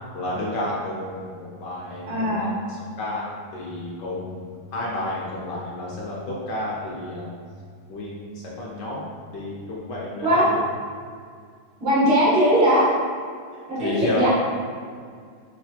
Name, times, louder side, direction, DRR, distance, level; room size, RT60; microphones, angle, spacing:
voice 1, 0.1-3.2 3.5-4.4 4.7-7.3 7.9-9.0 9.3-10.6 13.8-14.3, left 1 dB, 65° left, -5 dB, 1.2 m, -31 dB
voice 2, 2.1-2.5 10.2-10.4 11.8-12.9 13.7-14.3, equal, 75° right, -9 dB, 2.3 m, -19 dB
6.0 x 2.5 x 2.7 m, 2.1 s
omnidirectional pair, 2.2 m